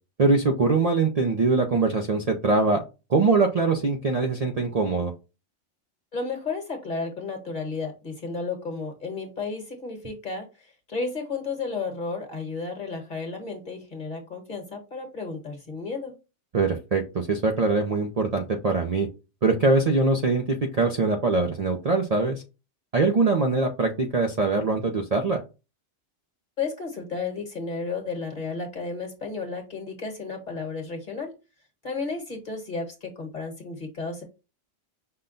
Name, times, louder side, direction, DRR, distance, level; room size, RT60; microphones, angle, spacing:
voice 1, 0.2-2.8 3.1-5.1 16.5-19.1 19.4-20.4 20.7-22.4 22.9-25.4, right 3 dB, 45° right, 3 dB, 0.5 m, -22 dB
voice 2, 6.1-10.5 10.9-16.1 26.6-31.3 31.8-34.2, left 4 dB, 40° left, 4 dB, 1.4 m, -33 dB
5.6 x 2.2 x 3.8 m, 0.29 s
omnidirectional pair, 1.2 m